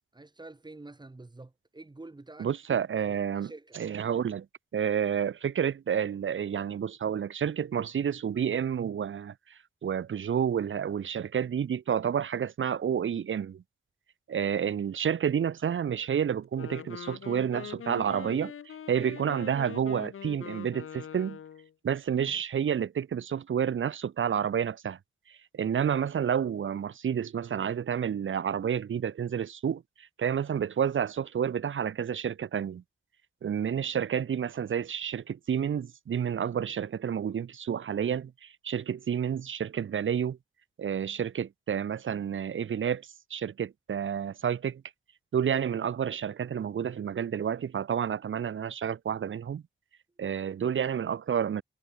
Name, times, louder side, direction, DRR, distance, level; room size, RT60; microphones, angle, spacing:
voice 1, 0.0-2.5 3.1-3.8, right 2 dB, 20° right, 6.6 m, -48 dB
voice 2, 2.4-4.5 4.7-13.6 14.3-21.4 21.8-25.0 25.3-32.8 33.4-40.4 40.8-44.8 45.3-49.6 50.2-51.6, right 8 dB, 70° right, 1.6 m, -30 dB
Wind instrument woodwind instrument, 16.4-21.7, left 8 dB, 85° left, 3.1 m, -43 dB
wide cardioid pair, 120°, 21 cm